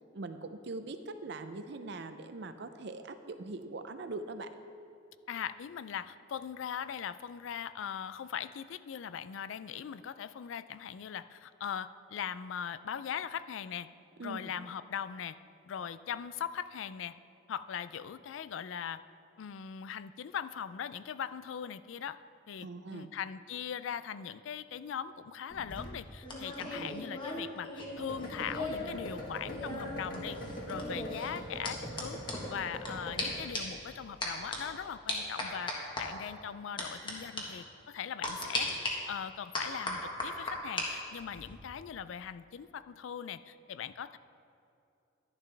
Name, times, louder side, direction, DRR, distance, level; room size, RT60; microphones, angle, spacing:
voice 1, 0.1-4.5 14.2-14.5 22.6-23.1 26.7-27.0, right 3 dB, 60° right, 9 dB, 0.6 m, -42 dB
voice 2, 5.3-13.9 14.2-15.4 15.7-17.1 17.5-19.0 19.4-22.2 22.5-30.4 30.7-32.2 32.5-38.7 39.1-44.2, left 8 dB, 75° left, 15 dB, 0.3 m, -40 dB
sound 1, 25.5-28.9 29.2-32.9 33.2-33.3 33.5-33.8 34.2-34.6 35.1-36.0 36.8-37.1 37.4-37.5 38.2-38.9 39.5-40.9 41.2-41.5, left 2 dB, 25° left, 1.3 m, -37 dB
sound 2, 28.0-34.9, equal, 45° left, 1.5 m, -42 dB
11.5 x 10.5 x 3.4 m, 2.6 s
head